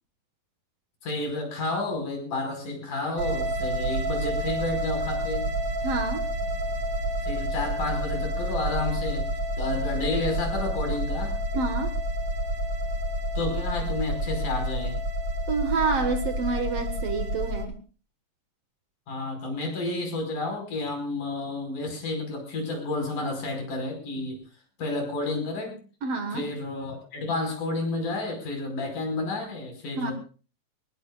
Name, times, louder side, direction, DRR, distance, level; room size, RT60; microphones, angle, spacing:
voice 1, 1.0-5.5 7.2-9.3 9.6-11.3 13.3-14.9 19.1-24.4 24.8-25.8 26.3-30.1, left 2 dB, 70° left, 3 dB, 6.6 m, -31 dB
sound 1, 3.2-17.7, equal, 70° right, 3.5 m, -29 dB
voice 2, 5.8-6.3 11.5-11.9 15.5-17.7 26.0-26.5 30.0-30.1, right 4 dB, 55° right, 7 dB, 2.3 m, -28 dB
23.5 x 19.0 x 2.4 m, 0.36 s
omnidirectional pair, 3.8 m